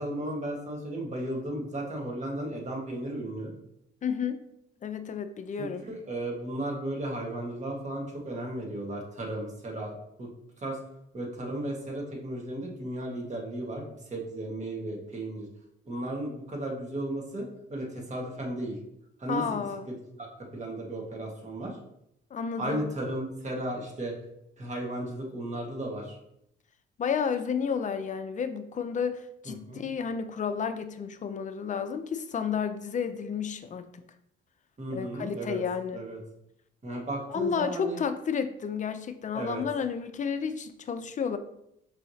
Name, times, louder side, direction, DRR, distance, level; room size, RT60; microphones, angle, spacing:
voice 1, 0.0-3.5 5.6-10.3 10.6-10.8 11.1-15.5 15.9-18.8 19.2-19.6 20.1-20.3 20.5-21.8 22.6-24.1 24.6-26.2 29.7-29.8 34.8-35.6 35.9-36.2 36.8-38.0 39.3-39.6, right 1 dB, 35° right, -1 dB, 1.4 m, -35 dB
voice 2, 4.0-4.4 4.8-5.8 19.3-19.8 22.3-22.9 27.0-33.9 34.9-36.0 37.3-41.4, left 6 dB, 40° left, 9 dB, 0.4 m, -31 dB
5.4 x 3.1 x 2.7 m, 0.78 s
cardioid pair, 90°, 20 cm